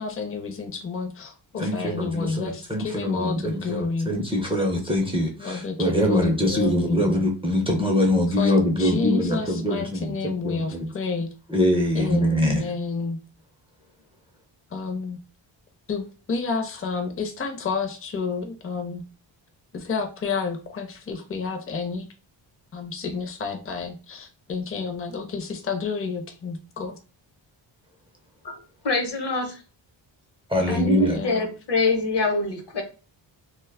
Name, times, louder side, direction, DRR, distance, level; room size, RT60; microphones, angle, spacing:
voice 1, 0.0-4.1 5.4-7.1 8.4-11.3 11.9-13.2 14.7-15.2 15.9-19.0 19.7-22.1 22.7-27.0 30.6-31.4, left 4 dB, 30° left, 4 dB, 0.6 m, -30 dB
voice 2, 1.6-10.2 10.4-10.9 11.5-12.7 30.5-31.2, left 1 dB, 10° right, 1 dB, 0.5 m, -23 dB
voice 3, 28.8-29.6 30.7-32.8, left 3 dB, 60° left, 4 dB, 0.9 m, -25 dB
2.2 x 2.0 x 3.3 m, 0.35 s
cardioid pair, 75°, 47 cm